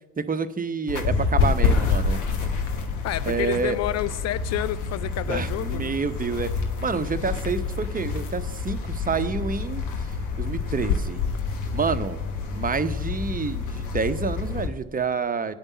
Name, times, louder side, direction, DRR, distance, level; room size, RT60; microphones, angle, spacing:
voice 1, 0.2-2.2 3.3-3.8 5.3-6.5 6.8-11.2 11.7-12.2 12.5-15.5, right 5 dB, 30° right, 0.8 m, -28 dB
sound 1, 0.9-14.7, left 4 dB, 75° left, 1.3 m, -27 dB
voice 2, 3.0-5.9, left 14 dB, 55° left, 0.5 m, -29 dB
9.5 x 5.3 x 8.2 m
hypercardioid pair, 45°, 31 cm